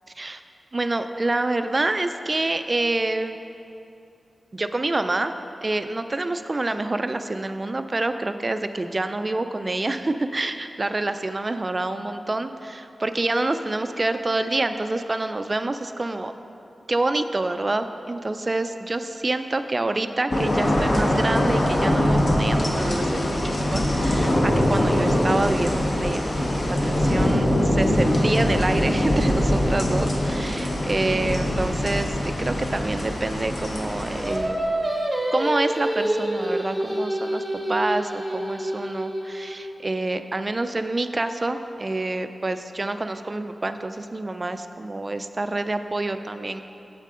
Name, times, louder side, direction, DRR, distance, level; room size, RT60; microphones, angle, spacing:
voice 1, 0.7-3.4 4.5-5.3 5.6-16.3 16.9-26.3 26.6-34.8 35.3-37.4 37.7-46.6, right 2 dB, 30° right, 9 dB, 0.3 m, -27 dB
sound 1, 20.3-34.4, left 1 dB, 45° left, 1.1 m, -22 dB
Singing, 34.2-39.6, right 1 dB, 10° right, 0.9 m, -27 dB
9.1 x 7.5 x 3.7 m, 2.8 s
wide cardioid pair, 120°, 0 cm